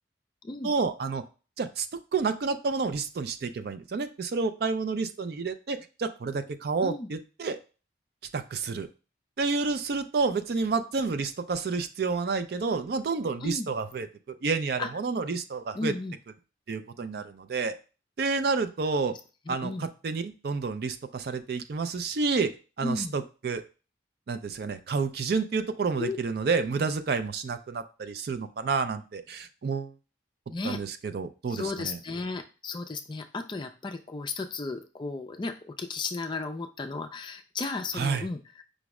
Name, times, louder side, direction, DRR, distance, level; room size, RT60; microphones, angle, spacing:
voice 1, 0.6-1.2 1.6-1.9 2.1-7.6 8.3-8.9 9.4-15.9 16.7-17.7 18.2-19.1 19.5-22.5 22.8-23.6 24.3-29.9 30.6-32.0 37.9-38.3, right 4 dB, 55° right, 9 dB, 0.4 m, -29 dB
voice 2, 15.7-16.2 18.9-19.0 19.5-19.9 22.8-23.1 26.0-26.2 30.5-30.8 31.5-38.6, left 3 dB, 25° left, 6 dB, 0.3 m, -34 dB
5.1 x 2.0 x 4.7 m, 0.34 s
head